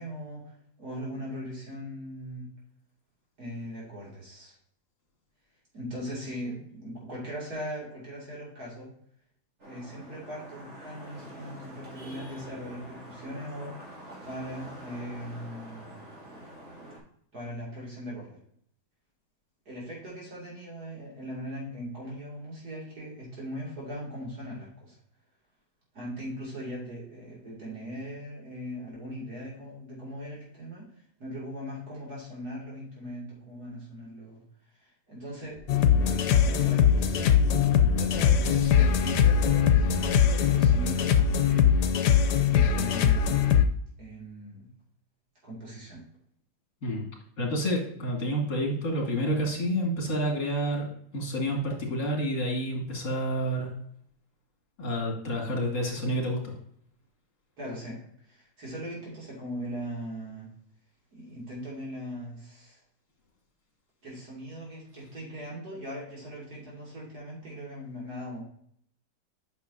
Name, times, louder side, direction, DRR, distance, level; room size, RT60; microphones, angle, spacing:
voice 1, 0.0-2.5 3.4-4.5 5.7-8.9 9.6-13.9 14.2-16.0 17.3-18.4 19.7-25.0 25.9-34.4 34.8-41.7 42.4-43.7 44.0-44.7 45.4-46.0 57.6-60.5 61.1-62.8 64.0-68.4, equal, 65° right, -5 dB, 2.9 m, -39 dB
Vehicle horn car horn honking / Traffic noise roadway noise, 9.6-17.0, right 1 dB, 50° right, 2.9 m, -46 dB
sound 1, 35.5-40.2, right 4 dB, 5° right, 2.3 m, -38 dB
sound 2, 35.7-43.7, left 8 dB, 80° left, 1.2 m, -22 dB
voice 2, 47.4-50.9 51.1-53.7 54.8-56.5, equal, 50° left, -1 dB, 2.4 m, -29 dB
8.8 x 6.0 x 2.7 m, 0.66 s
omnidirectional pair, 1.8 m